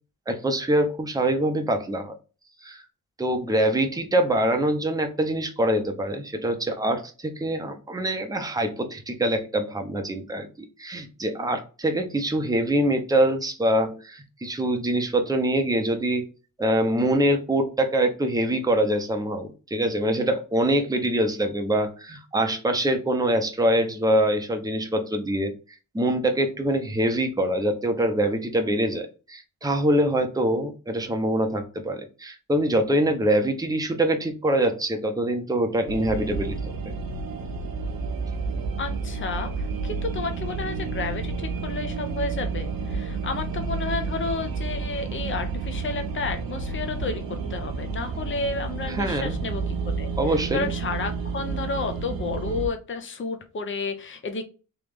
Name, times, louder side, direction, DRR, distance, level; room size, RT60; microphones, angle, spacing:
voice 1, 0.3-2.2 2.6-2.8 3.2-16.3 16.6-25.5 25.9-36.7 48.9-49.4 50.2-50.7, right 1 dB, 10° right, 5 dB, 0.7 m, -24 dB
sound 1, 35.9-52.7, right 4 dB, 85° right, 0.9 m, -30 dB
voice 2, 38.8-47.2 47.5-54.4, left 4 dB, 35° left, 7 dB, 0.6 m, -31 dB
3.4 x 3.0 x 3.4 m, 0.34 s
wide cardioid pair, 95°, 34 cm